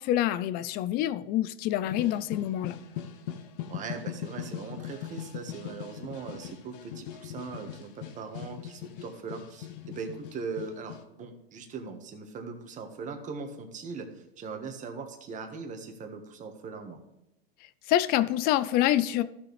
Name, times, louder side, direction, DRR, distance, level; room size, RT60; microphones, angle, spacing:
voice 1, 0.0-2.8 17.9-19.2, left 13 dB, 30° left, 15 dB, 0.5 m, -26 dB
sound 1, 1.8-11.0, left 10 dB, 65° left, 1.3 m, -40 dB
voice 2, 3.7-17.0, right 4 dB, 25° right, 6 dB, 1.5 m, -40 dB
14.5 x 6.8 x 3.3 m, 0.89 s
hypercardioid pair, 125°, 30 cm